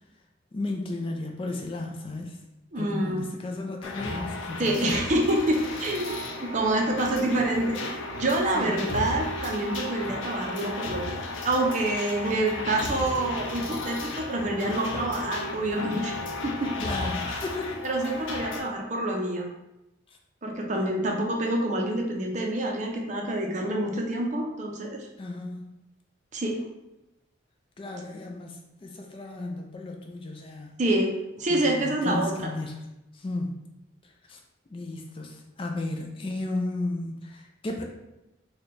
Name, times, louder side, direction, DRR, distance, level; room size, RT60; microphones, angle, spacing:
voice 1, 0.5-2.4 2.8-4.8 8.5-8.8 16.8-17.9 25.2-25.7 27.8-30.7 31.5-32.8 33.1-33.6 34.3-34.4 34.7-37.8, left 2 dB, 30° left, 2 dB, 0.3 m, -34 dB
voice 2, 2.7-3.2 4.6-11.2 11.4-16.7 17.8-19.5 20.4-25.1 26.3-26.6 30.8-32.5, right 1 dB, 40° right, 1 dB, 0.5 m, -27 dB
sound 1, 3.8-18.6, left 2 dB, 85° left, 0.5 m, -34 dB
4.1 x 2.2 x 3.2 m, 0.93 s
head